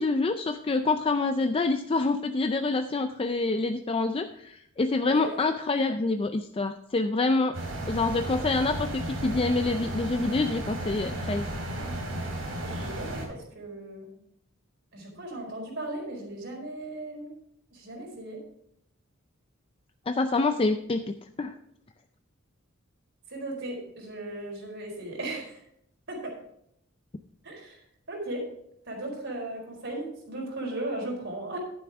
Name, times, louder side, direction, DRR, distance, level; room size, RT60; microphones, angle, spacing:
voice 1, 0.0-7.6 7.9-11.5 20.1-21.5, left 3 dB, 25° left, 7 dB, 0.4 m, -26 dB
voice 2, 5.0-5.4 12.6-14.1 14.9-17.3 17.7-18.4 23.3-25.6 26.1-26.3 27.4-27.8 28.1-28.5 28.8-31.6, right 2 dB, 65° right, -1 dB, 4.5 m, -36 dB
sound 1, 7.5-13.3, right 1 dB, 85° right, 3.9 m, -34 dB
11.5 x 9.4 x 3.6 m, 0.73 s
head